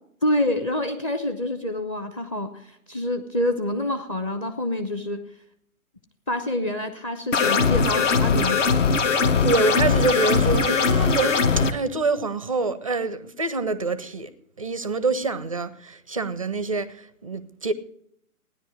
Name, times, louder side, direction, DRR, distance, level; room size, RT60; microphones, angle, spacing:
voice 1, 0.2-5.2 6.3-8.6, left 1 dB, 20° left, 0.8 m, -27 dB
sound 1, 7.3-11.7, left 5 dB, 55° left, 1.1 m, -20 dB
voice 2, 9.4-14.3 14.6-17.7, right 3 dB, 25° right, 0.4 m, -26 dB
15.5 x 10.0 x 4.7 m
figure-of-eight pair, 130°, 44 cm